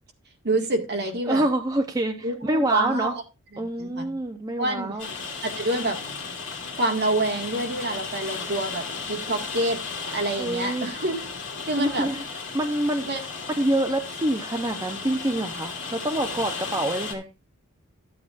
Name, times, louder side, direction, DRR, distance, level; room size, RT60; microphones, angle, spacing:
voice 1, 0.4-1.4 2.2-3.1 3.5-4.2 4.6-5.0 5.4-6.2 6.8-9.8 10.1-11.2 11.6-12.1 13.0-13.2, right 2 dB, 50° right, 3 dB, 1.8 m, -27 dB
voice 2, 1.2-3.2 3.6-5.1 10.4-10.9 11.8-12.2 12.5-13.1 13.6-17.3, right 1 dB, 15° right, 4 dB, 0.6 m, -26 dB
Rain, 5.0-17.1, left 5 dB, 60° left, 2.5 m, -35 dB
13.5 x 8.5 x 2.5 m, 0.28 s
head